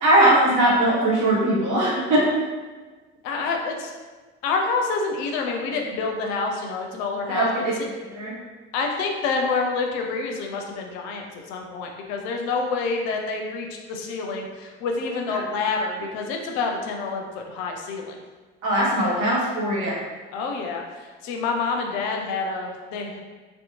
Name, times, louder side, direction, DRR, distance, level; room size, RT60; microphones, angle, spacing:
voice 1, 0.0-2.3 7.3-7.7 8.1-8.3 18.6-20.0, right 1 dB, 55° right, -5 dB, 0.9 m, -20 dB
voice 2, 3.2-3.9 4.4-7.9 8.7-18.2 20.3-20.8 21.2-23.2, left 4 dB, 65° left, 2 dB, 0.5 m, -27 dB
2.7 x 2.1 x 2.7 m, 1.3 s
figure-of-eight pair, 50°, 36 cm